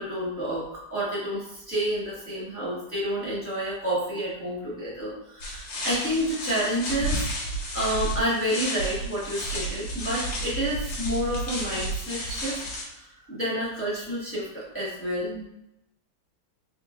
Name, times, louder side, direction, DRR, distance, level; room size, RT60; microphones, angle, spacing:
voice 1, 0.0-12.6 12.9-15.5, equal, 10° left, -9 dB, 0.7 m, -29 dB
sound 1, 5.4-12.8, right 1 dB, 60° left, 1.8 m, -32 dB
3.8 x 3.6 x 2.3 m, 0.82 s
omnidirectional pair, 2.4 m